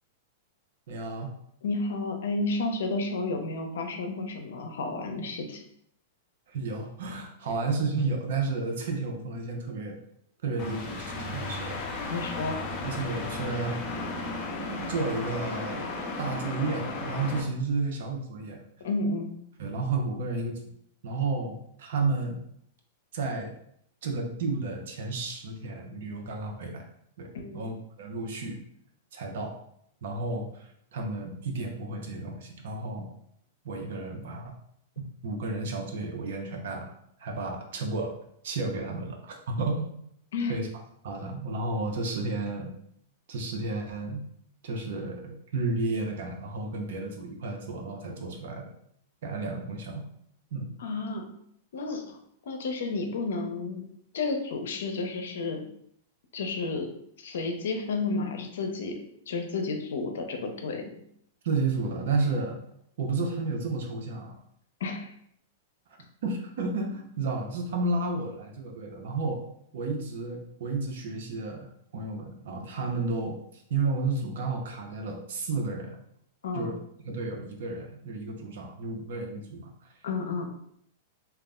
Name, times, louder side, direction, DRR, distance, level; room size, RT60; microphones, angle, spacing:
voice 1, 0.9-1.3 6.5-10.0 10.4-11.9 12.8-13.8 14.9-15.8 16.2-18.6 19.6-20.6 21.0-22.4 23.1-23.5 24.0-26.8 27.2-27.3 27.5-28.6 29.1-29.5 30.0-33.1 33.6-34.5 35.2-36.9 37.2-38.1 38.4-40.0 40.5-40.7 41.0-42.7 43.3-44.2 44.6-48.7 49.2-50.1 50.5-50.7 61.4-62.6 63.0-64.4 66.2-69.4 69.7-71.7 71.9-75.9 76.5-76.8 77.0-79.9, right 3 dB, 70° right, 2 dB, 0.6 m, -32 dB
voice 2, 1.6-5.6 12.1-12.6 18.8-19.4 27.3-27.6 40.3-40.6 50.8-51.3 51.7-52.2 52.5-53.8 54.1-55.6 56.3-56.9 57.2-59.0 59.3-61.0 64.8-65.1 76.4-76.7 80.0-80.4, left 3 dB, 80° left, 4 dB, 0.5 m, -31 dB
sound 1, 10.6-17.4, left 3 dB, 35° left, 0.5 m, -35 dB
2.3 x 2.0 x 3.5 m, 0.69 s
supercardioid pair, 150°, 0 cm